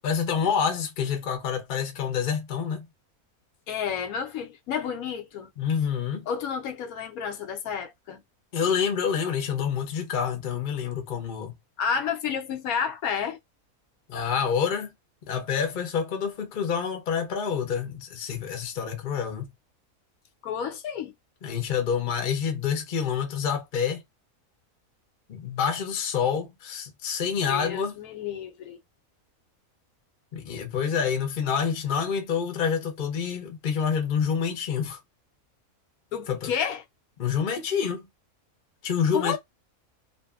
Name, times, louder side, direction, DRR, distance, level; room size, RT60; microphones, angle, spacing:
voice 1, 0.0-2.9 5.6-6.3 8.5-11.5 14.1-14.9 15.3-19.5 21.4-24.0 25.3-28.0 30.3-35.0 36.3-36.5 37.2-38.1 38.8-39.4, left 7 dB, 45° left, 0.7 m, -27 dB
voice 2, 3.7-5.5 6.3-8.2 11.8-13.4 20.4-21.1 27.5-28.8 36.1-36.8 39.1-39.4, left 7 dB, 80° left, 1.0 m, -30 dB
2.6 x 2.5 x 2.3 m
omnidirectional pair, 1.5 m